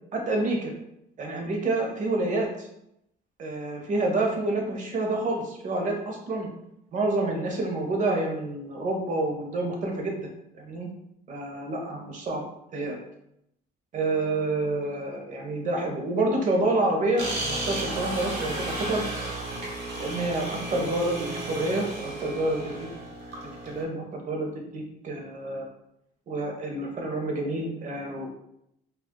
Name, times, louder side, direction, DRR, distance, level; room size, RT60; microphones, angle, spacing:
voice 1, 0.1-0.7 1.2-2.7 3.4-6.5 6.9-10.3 10.5-10.9 11.3-12.5 12.7-13.0 13.9-19.0 20.0-22.9 23.6-25.7 26.3-28.4, right 2 dB, 50° right, 1 dB, 0.8 m, -28 dB
sound 1, 17.2-23.8, right 2 dB, 85° right, 1.0 m, -34 dB
2.4 x 2.3 x 3.6 m, 0.80 s
cardioid pair, 110°, 17 cm